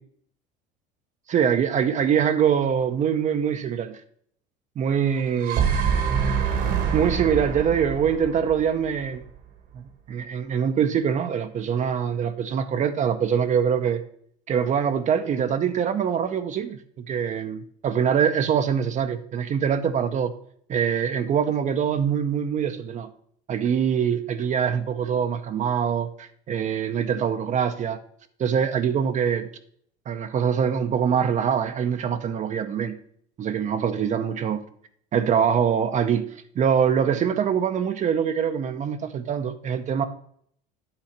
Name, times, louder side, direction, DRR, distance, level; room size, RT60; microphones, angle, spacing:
voice 1, 1.3-4.0 4.8-5.6 6.9-9.3 9.7-14.0 14.5-20.3 20.7-23.1 23.5-28.0 28.4-29.5 30.1-32.9 33.4-34.6 35.1-36.3 36.6-40.1, right 7 dB, 40° right, 0.7 m, -24 dB
sound 1, 5.2-9.4, right 7 dB, 60° right, 1.5 m, -25 dB
8.9 x 3.9 x 5.8 m
supercardioid pair, 90°, 19 cm